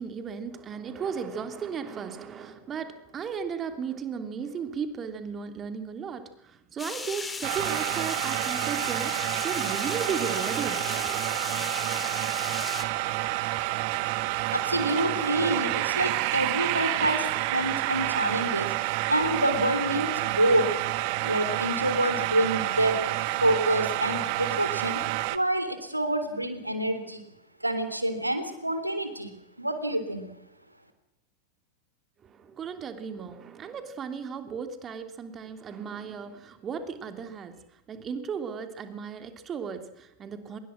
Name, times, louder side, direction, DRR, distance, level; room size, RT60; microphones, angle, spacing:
voice 1, 0.0-6.2 6.7-11.4 32.5-37.5 37.9-40.6, right 6 dB, 25° right, 8 dB, 3.1 m, -35 dB
sound 1, 6.8-12.8, left 4 dB, 15° left, 3.0 m, -36 dB
sound 2, 7.4-25.4, right 18 dB, 45° right, 1.4 m, -29 dB
voice 2, 14.5-18.8 19.1-20.8 21.2-25.0 25.3-27.2 27.6-30.3, right 1 dB, 85° right, 9 dB, 3.5 m, -27 dB
25.0 x 21.5 x 6.4 m, 0.83 s
figure-of-eight pair, 90°, 0 cm